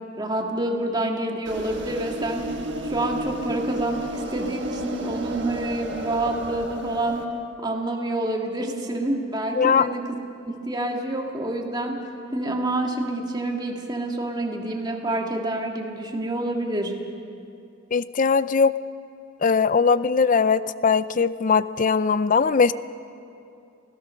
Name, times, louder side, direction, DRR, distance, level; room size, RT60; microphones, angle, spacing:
voice 1, 0.2-2.5 2.8-7.3 7.6-10.0 10.5-17.0, right 1 dB, 20° right, 1 dB, 2.0 m, -27 dB
sound 1, 1.5-7.2, right 1 dB, 60° right, 1.6 m, -33 dB
voice 2, 9.5-9.9 17.9-18.8 19.4-22.7, left 5 dB, 40° left, 15 dB, 0.5 m, -20 dB
27.0 x 16.5 x 6.4 m, 2.6 s
head